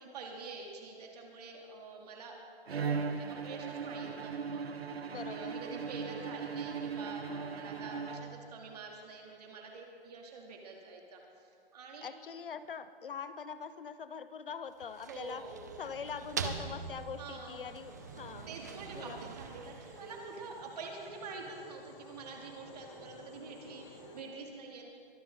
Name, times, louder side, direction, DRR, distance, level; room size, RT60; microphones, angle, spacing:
voice 1, 0.0-2.4 2.7-4.9 5.2-12.1 15.1-15.6 17.2-17.7 18.5-24.9, right 4 dB, 40° right, 0 dB, 2.8 m, -47 dB
Bowed string instrument, 2.7-8.7, right 5 dB, 85° right, 1.1 m, -38 dB
voice 2, 5.1-5.6 12.0-15.4 15.8-18.5 19.0-19.2, left 6 dB, 60° left, 13 dB, 0.8 m, -43 dB
sound 1, 14.7-20.7, right 6 dB, 20° right, 0.5 m, -43 dB
sound 2, 16.2-24.2, left 2 dB, 15° left, 1.3 m, -55 dB
23.0 x 12.0 x 3.9 m, 2.4 s
hypercardioid pair, 155°, 30 cm